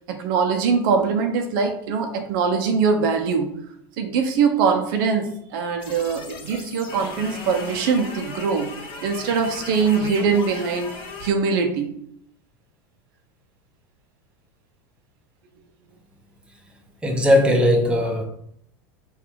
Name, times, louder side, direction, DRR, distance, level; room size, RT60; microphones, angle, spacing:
voice 1, 0.1-3.5 4.0-10.9 11.2-12.0, right 5 dB, 65° right, 0.8 m, -22 dB
sound 1, 5.8-11.3, left 3 dB, 40° left, 1.4 m, -37 dB
voice 2, 17.0-18.2, left 1 dB, 10° right, 1.0 m, -18 dB
4.0 x 2.7 x 4.6 m
hypercardioid pair, 95°, 12 cm